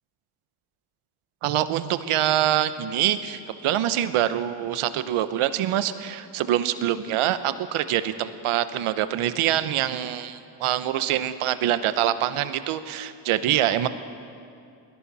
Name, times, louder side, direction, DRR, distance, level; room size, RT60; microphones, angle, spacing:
voice 1, 1.4-13.9, right 12 dB, 80° right, 12 dB, 1.1 m, -25 dB
29.5 x 21.0 x 4.2 m, 2.4 s
supercardioid pair, 70°, 50 cm